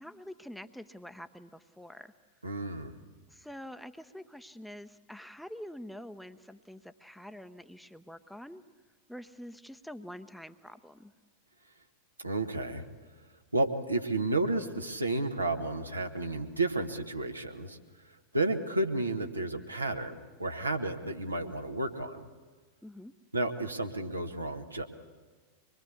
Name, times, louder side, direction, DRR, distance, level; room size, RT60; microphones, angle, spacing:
voice 1, 0.0-2.1 3.3-8.6 9.1-11.1 22.8-23.1, equal, ahead, 10 dB, 0.8 m, -46 dB
voice 2, 2.4-3.0 12.2-12.8 13.5-17.8 18.3-22.3 23.3-24.8, right 2 dB, 85° right, 4 dB, 1.5 m, -32 dB
24.0 x 22.0 x 8.5 m, 1.4 s
figure-of-eight pair, 90°, 0 cm